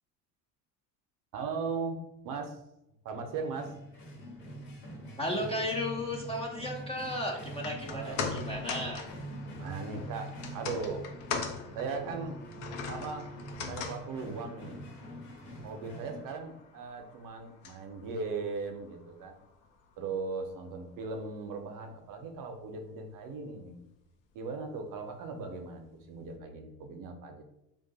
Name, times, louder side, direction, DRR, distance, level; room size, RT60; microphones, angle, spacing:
voice 1, 1.3-2.0 2.2-2.6 3.0-3.7 7.9-8.3 9.4-11.1 11.7-12.4 12.9-13.3 13.6-14.9 15.6-19.4 20.0-23.8 24.3-27.4, right 4 dB, 45° right, 5 dB, 0.7 m, -38 dB
sound 1, 3.1-16.2, right 1 dB, 75° left, 1.2 m, -45 dB
voice 2, 5.2-9.0, left 1 dB, 15° left, -1 dB, 0.5 m, -34 dB
sound 2, 7.5-19.9 20.2-20.3, left 5 dB, 60° left, 0.7 m, -42 dB
2.5 x 2.3 x 3.8 m, 0.86 s
hypercardioid pair, 70°, 48 cm